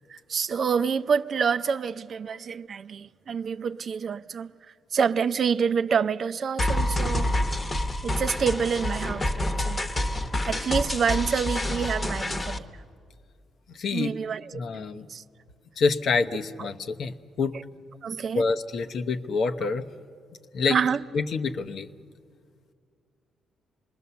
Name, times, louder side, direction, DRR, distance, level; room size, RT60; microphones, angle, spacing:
voice 1, 0.1-4.5 4.9-7.3 8.0-9.9 10.5-12.7 13.9-14.6 15.1-15.2 16.6-16.7 18.0-18.4 20.7-21.0, right 6 dB, 50° right, 0.5 m, -27 dB
sound 1, 6.6-12.6, left 1 dB, 25° left, 1.1 m, -27 dB
voice 2, 13.7-14.1 14.5-15.1 15.8-17.6 18.3-19.9 20.5-20.8 21.1-21.9, left 4 dB, 60° left, 0.9 m, -27 dB
26.0 x 20.5 x 6.9 m
cardioid pair, 90°, 0 cm